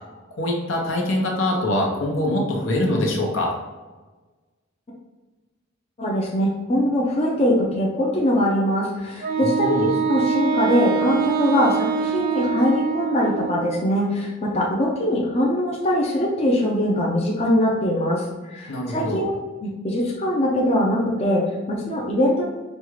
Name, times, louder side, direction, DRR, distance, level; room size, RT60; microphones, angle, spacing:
voice 1, 0.3-3.5 9.4-9.9 18.7-19.2, left 1 dB, 70° left, -1 dB, 0.9 m, -24 dB
voice 2, 6.0-19.3 19.6-22.4, left 1 dB, 30° left, -3 dB, 0.6 m, -22 dB
Wind instrument woodwind instrument, 9.2-13.9, right 7 dB, 45° right, 0.3 m, -24 dB
5.3 x 2.4 x 3.1 m, 1.2 s
head